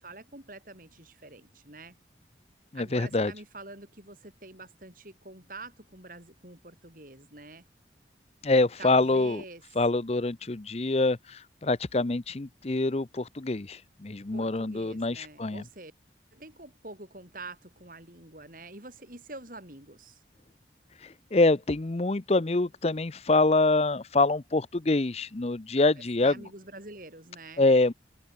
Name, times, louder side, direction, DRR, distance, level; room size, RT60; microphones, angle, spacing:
voice 1, 0.0-2.0 2.7-7.6 8.8-9.6 14.3-15.9 16.3-20.2 26.2-27.6, right 2 dB, 50° right, 7.3 m, -46 dB
voice 2, 2.7-3.3 8.4-9.4 9.8-15.6 21.0-26.4 27.6-27.9, left 2 dB, 35° left, 0.7 m, -25 dB
head